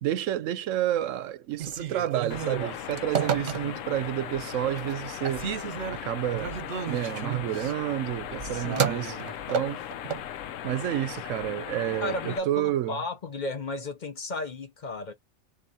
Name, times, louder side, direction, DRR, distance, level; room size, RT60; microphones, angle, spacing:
voice 1, 0.0-5.5 6.0-6.5 6.9-9.2 9.5-9.8 10.6-13.0, right 12 dB, 90° right, 1.0 m, -30 dB
Telephone, 1.5-4.0 4.5-5.0 5.2-10.3, right 7 dB, 70° right, 1.2 m, -32 dB
sound 1, 2.3-12.4, left 10 dB, 90° left, 1.0 m, -38 dB
voice 2, 3.3-3.8 8.4-8.9 12.0-15.1, left 2 dB, 45° left, 0.7 m, -34 dB
6.8 x 2.8 x 2.7 m
omnidirectional pair, 1.3 m